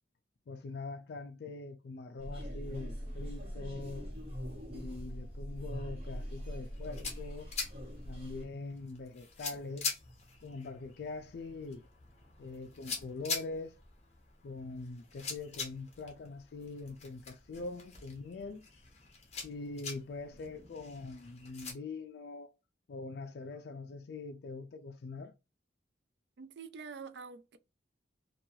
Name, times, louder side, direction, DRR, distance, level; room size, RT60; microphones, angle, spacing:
voice 1, 0.5-4.1 4.7-7.5 8.1-9.9 10.4-11.9 12.4-13.7 14.4-18.6 19.4-22.5 22.9-25.3, left 3 dB, 55° left, 0.3 m, -43 dB
sound 1, 2.2-8.4, equal, 30° right, 1.0 m, -42 dB
sound 2, 6.6-21.7, left 5 dB, 35° left, 0.9 m, -44 dB
voice 2, 26.4-27.6, right 5 dB, 60° right, 0.4 m, -46 dB
3.0 x 2.3 x 2.7 m
head